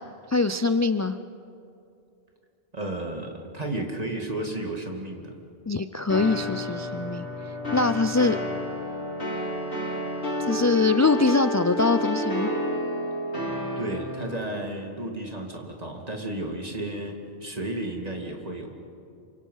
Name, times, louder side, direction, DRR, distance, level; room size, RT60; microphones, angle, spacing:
voice 1, 0.3-1.2 5.7-8.4 10.4-12.5, left 3 dB, 25° left, 10 dB, 0.3 m, -23 dB
voice 2, 2.7-5.4 13.8-18.7, right 1 dB, 35° right, 2 dB, 2.6 m, -33 dB
sound 1, 6.1-14.4, left 1 dB, 85° left, 3.7 m, -30 dB
28.0 x 25.0 x 5.6 m, 2.7 s
omnidirectional pair, 1.1 m